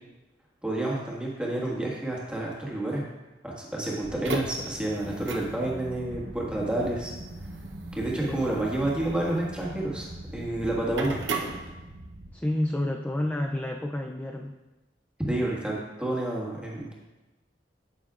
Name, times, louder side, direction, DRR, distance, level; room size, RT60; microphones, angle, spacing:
voice 1, 0.6-3.0 3.4-7.1 7.9-10.1 10.3-11.2 15.3-15.7 16.0-16.9, right 1 dB, 5° right, -4 dB, 1.7 m, -29 dB
sound 1, 4.0-12.3, right 2 dB, 85° right, 0.9 m, -37 dB
voice 2, 8.2-8.6 12.3-14.6, left 1 dB, 10° left, 2 dB, 0.4 m, -30 dB
9.5 x 8.7 x 2.5 m, 1.1 s
head